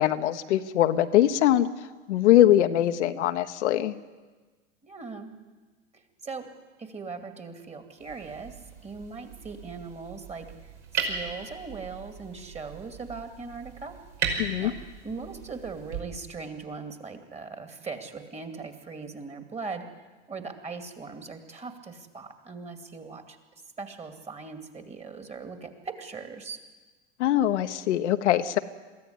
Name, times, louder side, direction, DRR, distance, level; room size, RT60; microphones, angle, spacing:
voice 1, 0.0-1.7 2.1-3.9 14.4-14.7 27.2-28.6, left 12 dB, 75° left, 8 dB, 1.1 m, -22 dB
voice 2, 4.8-5.3 5.9-6.5 6.8-8.6 8.8-10.7 11.1-14.0 14.6-14.8 15.0-19.9 20.3-23.4 23.8-26.6, right 4 dB, 20° right, 6 dB, 2.5 m, -39 dB
sound 1, 8.0-16.0, right 5 dB, 70° right, 5.6 m, -37 dB
23.0 x 15.0 x 9.8 m, 1.3 s
hypercardioid pair, 105°, 35 cm